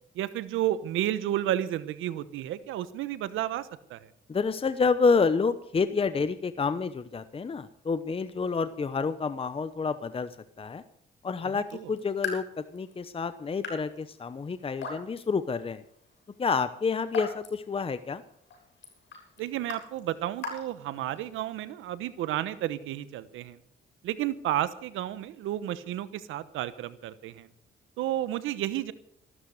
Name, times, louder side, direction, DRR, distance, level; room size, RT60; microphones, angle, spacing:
voice 1, 0.1-4.1 11.4-11.9 19.4-23.6 24.0-27.5 28.0-28.9, right 12 dB, 90° right, 15 dB, 1.1 m, -32 dB
voice 2, 4.3-10.3 10.6-10.8 11.2-12.5 12.7-15.8 16.4-18.2, left 5 dB, 30° left, 13 dB, 0.9 m, -28 dB
Raindrop / Drip, 11.6-21.5, left 5 dB, 65° left, 7.6 m, -43 dB
14.5 x 12.5 x 6.5 m, 0.67 s
cardioid pair, 90°, 20 cm